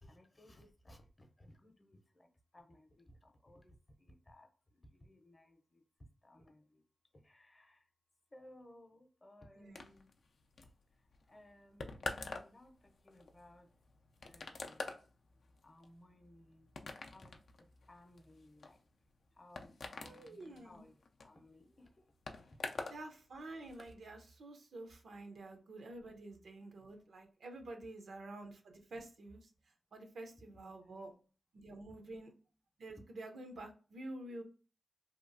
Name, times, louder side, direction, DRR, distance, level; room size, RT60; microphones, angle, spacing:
voice 1, 0.0-2.3 2.5-3.7 4.0-4.5 4.9-5.8 6.2-6.8 7.2-7.8 8.3-10.1 11.3-13.7 14.2-15.0 15.6-16.7 17.1-17.4 17.9-18.8 19.4-22.1 30.4-31.0, left 1 dB, 35° left, 0.6 m, -61 dB
voice 2, 9.5-9.9 20.0-20.8 22.9-31.1 31.5-32.3 32.8-34.4, right 2 dB, 85° right, 0.5 m, -49 dB
sound 1, 9.7-23.0 23.3-23.9, left 3 dB, 80° left, 0.3 m, -47 dB
2.8 x 2.3 x 2.5 m
cardioid pair, 60°, 0 cm